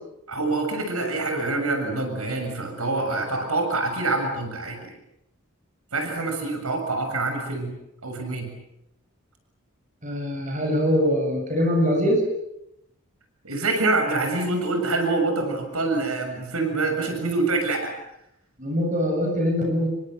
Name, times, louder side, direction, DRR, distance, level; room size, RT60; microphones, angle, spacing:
voice 1, 0.3-4.9 5.9-7.7 8.0-8.5 13.4-17.9, right 2 dB, 90° right, 5 dB, 6.9 m, -26 dB
voice 2, 10.0-12.2 18.6-19.9, equal, 35° right, 2 dB, 7.5 m, -23 dB
27.5 x 23.5 x 7.9 m, 0.82 s
head